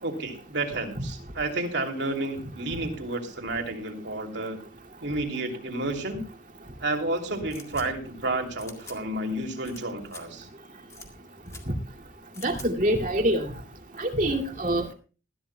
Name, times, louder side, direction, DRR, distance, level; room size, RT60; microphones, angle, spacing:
voice 1, 0.0-4.6 5.0-6.2 6.8-10.5, right 2 dB, 60° right, 3 dB, 3.0 m, -31 dB
sound 1, 7.5-7.9 8.6-9.0 9.6-9.8 10.1-10.2 10.9-11.1 11.5-11.6 12.3-12.7, left 4 dB, 15° left, 1.9 m, -45 dB
voice 2, 12.4-13.5 14.0-14.9, right 1 dB, 40° right, 3 dB, 2.5 m, -25 dB
20.5 x 14.0 x 2.2 m, 0.34 s
head